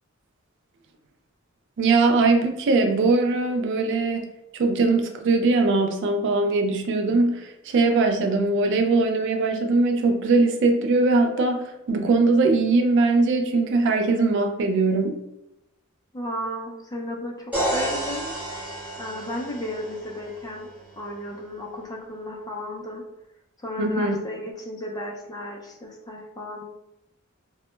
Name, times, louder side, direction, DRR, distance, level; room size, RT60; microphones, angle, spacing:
voice 1, 1.8-4.2 4.5-15.2 23.8-24.2, right 3 dB, 60° right, 5 dB, 0.3 m, -21 dB
voice 2, 16.1-18.7 19.0-20.7 21.0-23.0 23.6-26.6, left 1 dB, 20° left, 0 dB, 0.4 m, -34 dB
sound 1, 17.5-21.4, right 1 dB, 5° right, 1.0 m, -31 dB
2.1 x 2.0 x 3.0 m, 0.87 s
head